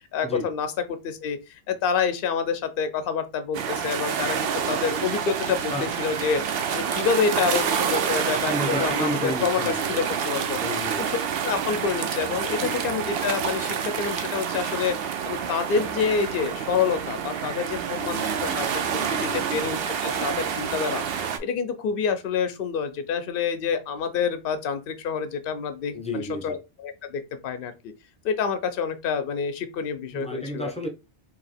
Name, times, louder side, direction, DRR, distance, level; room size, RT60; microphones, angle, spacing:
voice 1, 0.1-1.4 1.7-10.6 11.0-11.2 11.4-18.8 19.1-21.0 21.4-27.9 28.2-30.7, left 6 dB, 60° left, 0.7 m, -28 dB
sound 1, 3.5-21.4, right 7 dB, 65° right, 0.7 m, -28 dB
voice 2, 8.5-10.0 10.5-11.1 12.5-12.8 18.0-18.6 18.9-19.5 25.9-26.6 30.1-30.9, left 1 dB, 10° left, 0.5 m, -32 dB
2.9 x 2.8 x 4.1 m
omnidirectional pair, 1.2 m